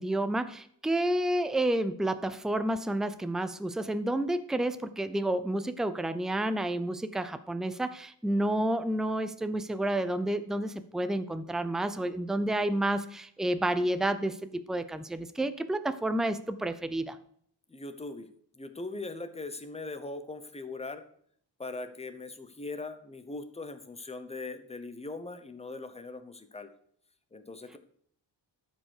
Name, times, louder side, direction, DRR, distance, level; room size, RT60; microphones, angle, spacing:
voice 1, 0.0-17.2, right 1 dB, ahead, 11 dB, 0.6 m, -30 dB
voice 2, 17.7-18.3 18.6-21.0 21.6-26.7 27.3-27.8, left 3 dB, 15° left, 9 dB, 1.0 m, -40 dB
12.5 x 5.3 x 6.5 m, 0.63 s
wide cardioid pair, 130°, 42 cm